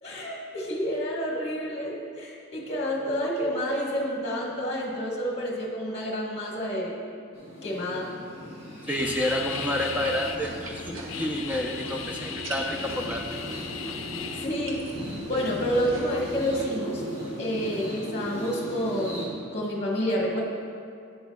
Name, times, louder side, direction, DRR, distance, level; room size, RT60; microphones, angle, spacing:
voice 1, 0.0-6.9 7.6-8.1 14.4-14.9 15.3-17.0 17.4-20.4, equal, 30° left, -2 dB, 1.2 m, -29 dB
sound 1, 7.3-19.2, equal, 30° right, 2.2 m, -38 dB
sound 2, 8.9-10.4 10.7-14.5, left 8 dB, 75° left, 0.5 m, -37 dB
voice 2, 8.9-13.4, equal, 10° right, 1 dB, 0.6 m, -29 dB
sound 3, 9.0-16.7, right 1 dB, 80° right, 1.1 m, -42 dB
10.5 x 9.3 x 2.3 m, 2.4 s
head